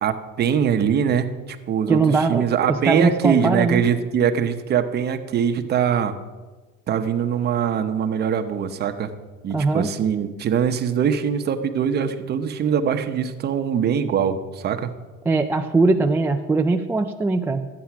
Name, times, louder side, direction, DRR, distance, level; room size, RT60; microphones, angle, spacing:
voice 1, 0.0-1.3 1.7-6.1 6.9-9.1 9.4-14.9, right 8 dB, 30° right, 8 dB, 0.9 m, -22 dB
voice 2, 1.9-2.5 2.9-3.8 9.5-9.9 15.3-17.7, right 3 dB, 10° right, 4 dB, 0.3 m, -20 dB
13.0 x 8.6 x 5.9 m, 1.3 s
cardioid pair, 140°, 31 cm